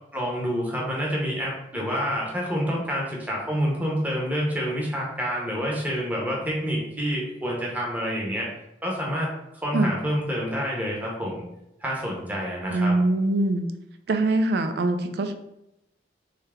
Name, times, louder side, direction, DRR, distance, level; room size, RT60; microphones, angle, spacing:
voice 1, 0.1-8.5 8.8-9.3 9.6-11.4 11.8-12.9, equal, 10° right, -3 dB, 0.8 m, -28 dB
voice 2, 12.7-13.7 14.1-15.4, right 2 dB, 60° right, 8 dB, 0.4 m, -23 dB
3.3 x 2.8 x 3.5 m, 0.86 s
head